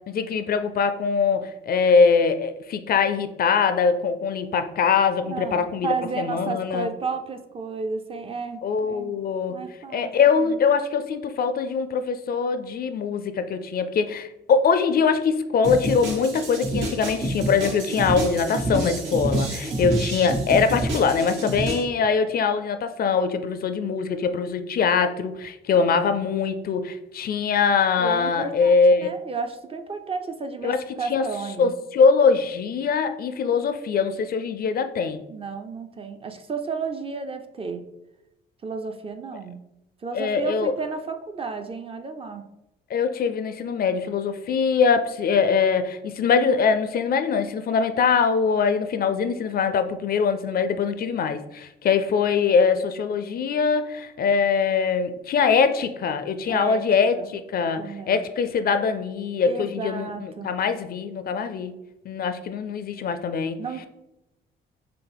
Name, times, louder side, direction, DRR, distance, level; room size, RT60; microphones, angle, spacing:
voice 1, 0.1-6.9 8.6-9.6 9.9-29.1 30.6-30.8 31.1-31.3 31.6-35.2 40.1-40.7 42.9-61.7 62.1-63.6, left 5 dB, 50° left, 9 dB, 0.4 m, -22 dB
voice 2, 5.2-9.1 9.5-10.1 10.4-10.6 19.7-20.1 28.0-31.7 35.3-37.8 38.6-39.6 40.0-42.4 56.5-56.8 57.1-57.3 57.8-58.2 59.5-60.5 63.6-63.9, right 4 dB, 30° right, 7 dB, 0.4 m, -32 dB
sound 1, 15.6-21.8, right 1 dB, 75° right, 1.3 m, -28 dB
5.7 x 2.0 x 3.4 m, 0.91 s
cardioid pair, 90°, 20 cm